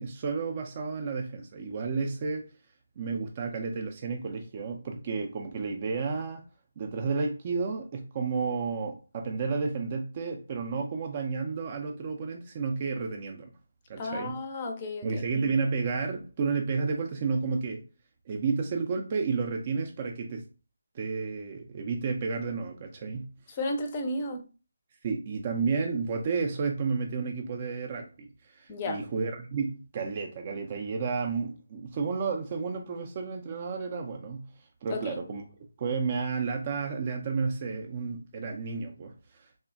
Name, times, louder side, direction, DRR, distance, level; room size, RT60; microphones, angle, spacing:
voice 1, 0.0-2.5 3.0-6.5 6.8-13.5 13.9-14.4 15.0-17.8 18.3-20.5 20.9-23.3 25.0-34.5 34.8-35.4 35.8-39.5, right 4 dB, 30° right, 0.4 m, -31 dB
voice 2, 14.0-15.2 23.5-24.4 28.7-29.0 34.9-35.2, left 2 dB, 25° left, 0.5 m, -33 dB
3.3 x 2.1 x 2.4 m
figure-of-eight pair, 155°, 0 cm